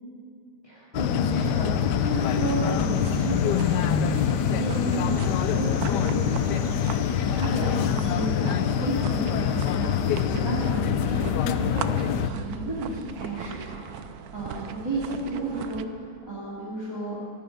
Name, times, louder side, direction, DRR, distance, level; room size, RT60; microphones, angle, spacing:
voice 1, 0.6-17.2, right 1 dB, 10° right, -8 dB, 2.6 m, -33 dB
sound 1, 0.9-12.3, left 8 dB, 70° left, 1.1 m, -25 dB
sound 2, 2.3-15.9, right 8 dB, 70° right, 0.9 m, -39 dB
14.5 x 6.9 x 9.9 m, 2.6 s
omnidirectional pair, 2.1 m